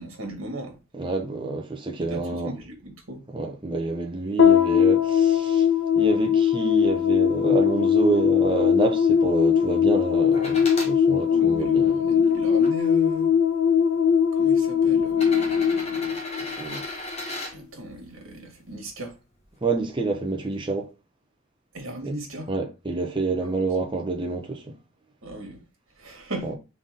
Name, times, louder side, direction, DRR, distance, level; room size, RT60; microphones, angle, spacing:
voice 1, 0.0-0.8 2.1-3.2 11.3-13.3 14.3-16.1 17.5-19.1 21.7-22.5 25.2-25.6 26.0-26.5, right 1 dB, 85° right, 1.6 m, -37 dB
voice 2, 0.9-2.6 3.3-5.7 6.0-12.1 16.6-16.8 19.6-20.9 22.0-22.1 22.5-24.7 26.4-26.5, right 3 dB, 25° right, 0.7 m, -28 dB
sound 1, 4.4-16.9, left 8 dB, 70° left, 1.0 m, -20 dB
sound 2, 10.3-10.9 11.7-12.7 13.7-13.8 15.1-17.5 19.4-19.5, left 1 dB, 30° left, 1.2 m, -35 dB
4.0 x 3.5 x 3.6 m
head